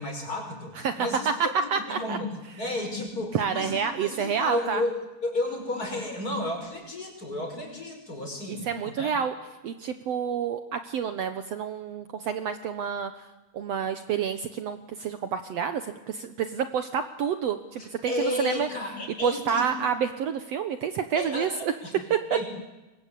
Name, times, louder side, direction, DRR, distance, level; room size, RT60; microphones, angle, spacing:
voice 1, 0.0-1.3 1.6-8.7 9.0-9.1 17.8-19.8 21.1-22.0 22.3-22.5, left 1 dB, 20° left, 3 dB, 6.0 m, -32 dB
voice 2, 0.7-2.2 3.3-4.8 8.5-9.3 9.6-13.2 13.5-18.7 19.2-22.4, right 7 dB, 85° right, 9 dB, 1.4 m, -29 dB
27.0 x 23.0 x 8.4 m, 1.1 s
omnidirectional pair, 4.5 m